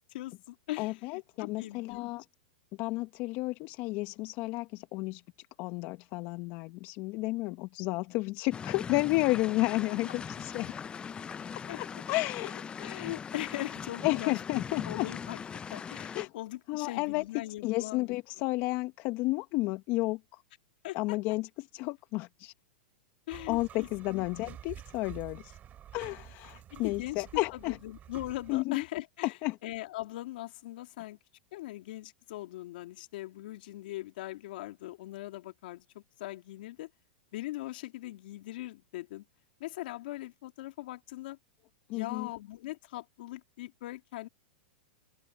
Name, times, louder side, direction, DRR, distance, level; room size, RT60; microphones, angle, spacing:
voice 1, 0.1-2.0 11.7-12.0 12.4-12.5 12.8-18.2 20.8-21.2 23.3-24.6 26.7-29.4 29.6-31.2 31.5-36.9 37.3-39.2 39.6-41.4 41.9-44.3, left 17 dB, 65° left, 2.7 m, -41 dB
voice 2, 0.8-2.2 2.8-5.2 5.6-10.7 11.8-12.6 14.0-15.1 16.1-16.3 16.7-17.2 17.6-20.4 20.9-22.5 23.5-25.6 25.9-27.8 28.5-28.8 29.4-29.6 41.9-42.3, left 21 dB, 45° left, 1.3 m, -32 dB
sound 1, 8.5-16.3, left 6 dB, 20° left, 0.6 m, -40 dB
sound 2, 23.3-28.6, right 10 dB, 30° right, 2.7 m, -49 dB
open air
hypercardioid pair, 125°, 6 cm